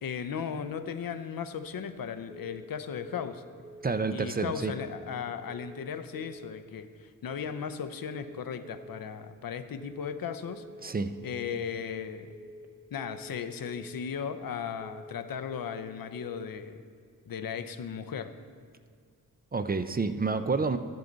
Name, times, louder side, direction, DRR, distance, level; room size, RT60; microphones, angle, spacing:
voice 1, 0.0-3.4 4.1-10.6 11.2-12.3 12.9-16.8 17.3-18.3, left 7 dB, 85° left, 10 dB, 0.7 m, -36 dB
sound 1, 2.3-2.7 3.0-3.4 3.6-4.0 4.8-5.2 5.5-5.9 6.1-6.5 7.3-7.7 8.0-8.4 8.6-9.0 9.8-10.2 10.5-10.9 11.1-11.5 12.3-12.7 13.0-13.4 13.6-14.0 14.8-15.2 15.5-15.9 16.1-16.5, right 1 dB, 5° right, 0.8 m, -48 dB
voice 2, 3.8-4.7 10.8-11.1 19.5-20.8, right 4 dB, 30° right, 10 dB, 0.4 m, -29 dB
12.5 x 10.5 x 3.9 m, 2.1 s
wide cardioid pair, 130°, 34 cm